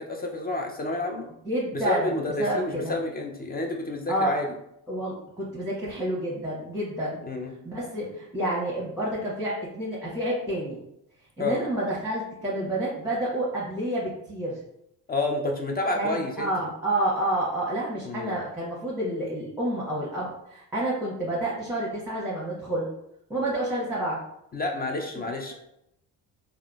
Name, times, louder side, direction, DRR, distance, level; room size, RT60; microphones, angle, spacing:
voice 1, 0.0-1.3 1.7-4.5 7.3-7.6 11.4-11.6 15.1-16.5 18.0-18.3 24.5-25.5, left 2 dB, 20° left, 2 dB, 0.4 m, -29 dB
voice 2, 1.4-3.0 4.1-4.3 4.9-7.2 7.6-10.8 11.4-14.6 15.9-22.9 23.3-24.2 25.5-25.6, right 1 dB, 5° right, -8 dB, 1.0 m, -29 dB
3.5 x 2.1 x 2.3 m, 0.79 s
hypercardioid pair, 60°, 48 cm